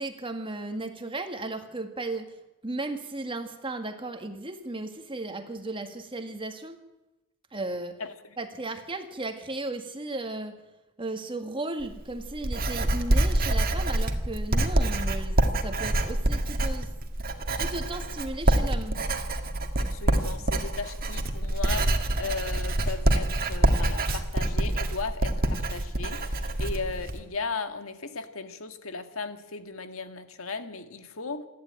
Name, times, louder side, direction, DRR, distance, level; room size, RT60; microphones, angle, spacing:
voice 1, 0.0-2.3 2.6-6.8 7.5-8.0 8.4-10.6 11.0-16.9 17.6-19.0, right 2 dB, 25° right, 7 dB, 1.8 m, -35 dB
Writing, 11.8-27.2, right 1 dB, 45° right, 2.0 m, -26 dB
voice 2, 19.8-31.4, left 4 dB, 70° left, 9 dB, 1.7 m, -36 dB
27.5 x 11.5 x 8.9 m, 0.99 s
head